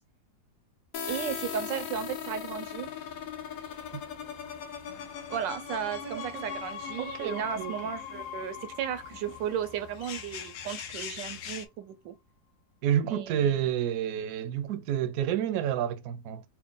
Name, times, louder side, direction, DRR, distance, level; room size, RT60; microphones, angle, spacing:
sound 1, 0.9-10.5, left 7 dB, 60° left, 1.0 m, -39 dB
sound 2, 1.1-11.7, left 8 dB, 85° left, 1.3 m, -47 dB
voice 1, 1.1-2.9 5.3-12.1 13.0-13.5, right 8 dB, 90° right, 1.4 m, -35 dB
voice 2, 6.0-6.4 7.0-7.7 12.8-16.4, right 10 dB, 70° right, 0.9 m, -29 dB
4.5 x 2.1 x 3.7 m
omnidirectional pair, 1.9 m